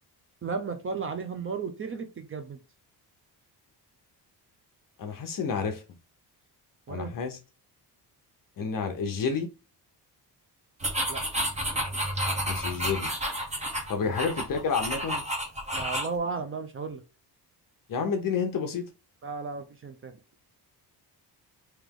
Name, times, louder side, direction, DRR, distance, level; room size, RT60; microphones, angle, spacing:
voice 1, 0.4-2.6 6.9-7.1 11.1-11.2 14.0-14.1 15.7-17.0 19.2-20.1, right 4 dB, 30° right, 0.5 m, -34 dB
voice 2, 5.0-5.8 6.9-7.4 8.6-9.5 12.5-13.1 13.9-15.2 17.9-18.9, left 5 dB, 50° left, 0.8 m, -29 dB
sound 1, 10.8-16.2, equal, 15° right, 1.0 m, -30 dB
3.3 x 3.0 x 3.6 m
cardioid pair, 150°, 42 cm